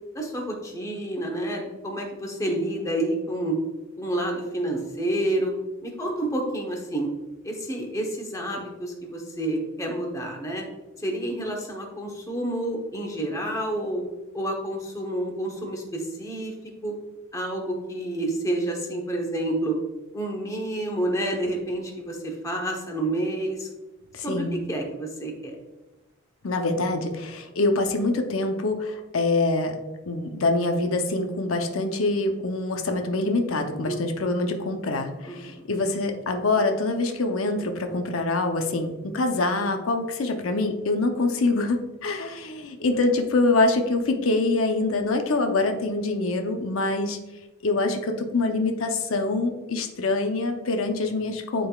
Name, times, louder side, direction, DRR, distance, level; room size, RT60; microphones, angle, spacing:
voice 1, 0.1-3.6 4.0-5.5 5.8-7.1 7.4-10.6 11.0-14.0 14.3-16.5 16.8-16.9 17.3-19.8 20.1-23.7 24.2-25.5 33.8-34.0 35.3-35.6, right 1 dB, 15° left, 1 dB, 1.0 m, -29 dB
voice 2, 24.1-24.6 26.4-29.7 30.1-47.2 47.6-51.7, left 2 dB, 85° left, 4 dB, 0.7 m, -25 dB
11.0 x 3.9 x 2.4 m, 1.1 s
head